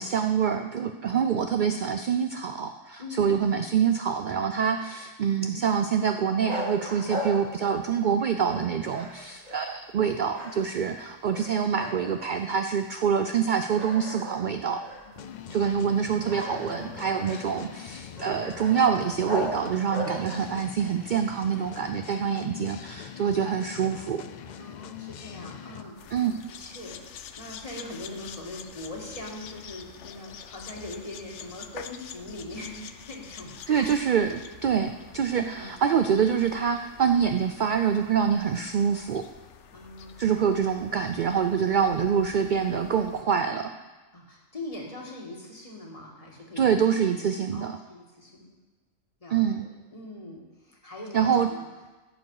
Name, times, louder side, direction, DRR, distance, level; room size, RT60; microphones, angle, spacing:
voice 1, 0.0-14.8 15.5-24.2 26.1-26.4 33.7-39.2 40.2-43.7 46.6-47.8 49.3-49.7 51.1-51.5, right 7 dB, 65° right, 7 dB, 0.5 m, -26 dB
voice 2, 3.0-3.4 15.0-15.6 24.6-34.0 35.4-35.8 39.7-40.3 44.1-47.2 47.5-48.6 49.2-51.7, left 2 dB, 25° left, -1 dB, 2.0 m, -42 dB
sound 1, 6.4-8.1 8.4-10.0 10.3-11.0 11.3-12.5 13.0-13.1 13.7-20.5, left 1 dB, 85° right, 3.5 m, -38 dB
sound 2, 15.2-25.9, left 8 dB, 85° left, 0.4 m, -42 dB
sound 3, 25.9-43.2, left 8 dB, 70° left, 0.9 m, -47 dB
15.5 x 6.9 x 4.8 m, 1.2 s
omnidirectional pair, 1.3 m